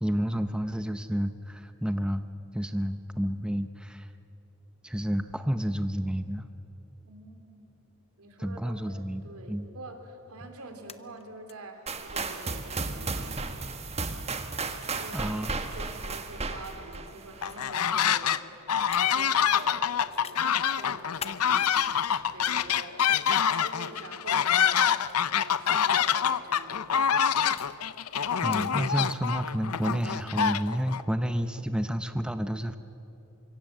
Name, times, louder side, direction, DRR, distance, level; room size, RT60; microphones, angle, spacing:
voice 1, 0.0-2.2 2.5-4.1 4.8-6.5 8.4-9.2 9.5-9.7 15.1-15.5 28.4-32.8, equal, 5° right, 9 dB, 0.7 m, -30 dB
voice 2, 7.0-7.7 8.2-14.0 15.0-15.3 15.7-21.9 22.3-24.8 25.3-27.1, right 2 dB, 75° right, 5 dB, 3.4 m, -46 dB
sound 1, 10.9-11.5 11.9-12.0 12.3-12.4 13.5-13.7 14.8-14.9 15.7-17.0 17.5-17.6 18.0-18.1 18.9-19.0 19.6-20.4 20.8-21.4 22.3-23.0 24.1-24.3 25.0-25.1 26.5-27.8 28.5-28.7, left 7 dB, 30° left, 0.8 m, -44 dB
sound 2, 11.9-17.7, right 3 dB, 30° right, 1.3 m, -34 dB
sound 3, 17.4-18.4 18.7-31.0, left 8 dB, 85° left, 0.7 m, -26 dB
25.0 x 24.0 x 7.3 m, 3.0 s
head